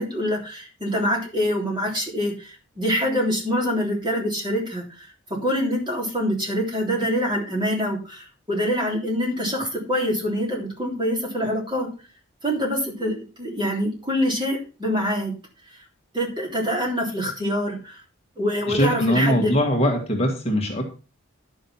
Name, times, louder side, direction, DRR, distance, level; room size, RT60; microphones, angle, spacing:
voice 1, 0.0-11.9 12.4-15.4 16.1-18.0 18.4-19.6, equal, 20° right, -1 dB, 3.5 m, -25 dB
voice 2, 18.7-20.8, equal, 30° left, 1 dB, 1.9 m, -21 dB
11.0 x 6.5 x 5.7 m, 0.34 s
head